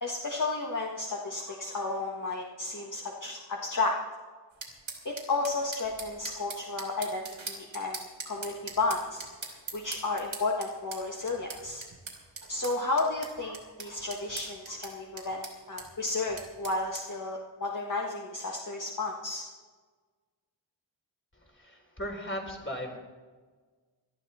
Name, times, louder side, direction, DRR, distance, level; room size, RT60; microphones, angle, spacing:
voice 1, 0.0-4.0 5.1-9.3 9.7-11.8 12.5-19.4, left 3 dB, 40° left, -1 dB, 1.7 m, -32 dB
sound 1, 4.6-17.0, right 3 dB, 85° right, 3.0 m, -42 dB
voice 2, 21.3-23.0, equal, 25° left, 1 dB, 3.7 m, -37 dB
19.5 x 12.0 x 4.3 m, 1.4 s
wide cardioid pair, 60°, 46 cm